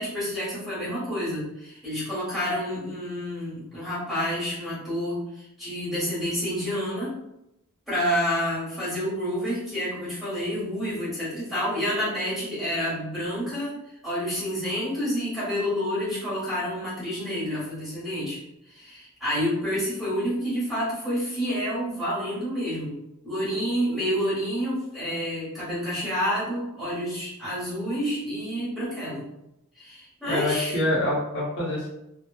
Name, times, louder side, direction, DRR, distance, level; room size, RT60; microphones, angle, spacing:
voice 1, 0.0-7.1 7.9-13.7 14.0-18.4 18.7-23.0 23.2-29.3 29.7-30.8, equal, ahead, -10 dB, 1.3 m, -29 dB
voice 2, 30.3-31.9, left 1 dB, 55° left, -6 dB, 0.8 m, -26 dB
2.8 x 2.2 x 2.3 m, 0.84 s
head